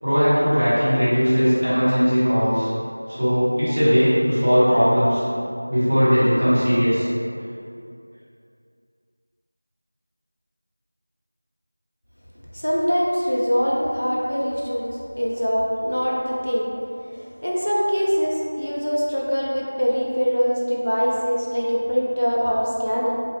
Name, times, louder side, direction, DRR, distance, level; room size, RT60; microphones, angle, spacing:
voice 1, 0.0-2.7 3.1-5.2 5.7-7.1, equal, 35° right, -13 dB, 1.4 m, -18 dB
voice 2, 12.5-16.7 17.1-23.2, equal, 65° left, -4 dB, 0.7 m, -23 dB
4.0 x 2.8 x 3.2 m, 2.5 s
figure-of-eight pair, 175°, 0 cm